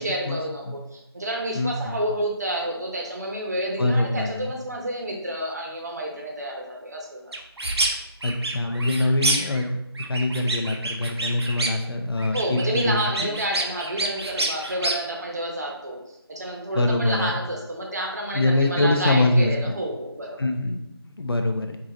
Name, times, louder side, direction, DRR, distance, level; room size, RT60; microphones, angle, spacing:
voice 1, 0.0-7.3 12.3-16.0 16.3-20.4, right 1 dB, 40° right, 0 dB, 0.8 m, -29 dB
voice 2, 1.5-2.0 3.8-4.5 8.2-13.3 16.7-17.4 18.3-19.7 20.4-20.8 21.0-21.8, left 2 dB, 65° left, 5 dB, 0.6 m, -24 dB
sound 1, 7.3-7.9 8.2-9.7 10.0-11.9 12.2-15.0, right 2 dB, 80° right, 0.8 m, -27 dB
4.7 x 2.7 x 3.7 m, 0.87 s
figure-of-eight pair, 165°, 13 cm